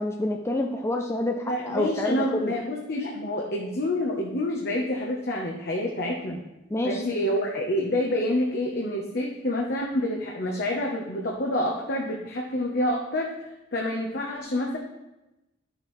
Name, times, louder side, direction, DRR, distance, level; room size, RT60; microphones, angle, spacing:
voice 1, 0.0-2.5 6.7-7.0, left 1 dB, 15° left, 2 dB, 0.5 m, -28 dB
voice 2, 1.5-6.4 6.8-13.3 13.7-14.8, left 1 dB, 55° left, -2 dB, 1.0 m, -27 dB
11.5 x 7.4 x 3.2 m, 0.98 s
head